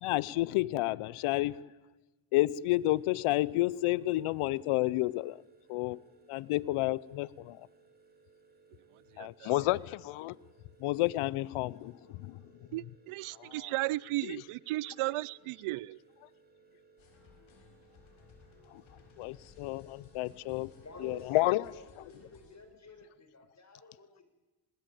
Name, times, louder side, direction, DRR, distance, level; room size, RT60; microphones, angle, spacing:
voice 1, 0.0-1.6 2.3-5.4 5.7-6.0 6.3-7.7 9.2-10.4 10.8-11.9 13.4-13.5 14.2-14.3 18.7-18.8 19.2-20.7 21.0-21.7, left 18 dB, 90° left, 22 dB, 0.8 m, -30 dB
sound 1, 2.5-22.0, right 4 dB, 20° right, 6.8 m, -64 dB
voice 2, 9.1-9.5 12.7-16.0, right 18 dB, 85° right, 24 dB, 0.8 m, -35 dB
sound 2, 17.0-22.6, left 5 dB, 70° left, 6.3 m, -60 dB
voice 3, 20.8-24.2, left 3 dB, 35° left, 6 dB, 7.4 m, -51 dB
26.0 x 20.5 x 9.2 m, 1.1 s
cardioid pair, 75°, 48 cm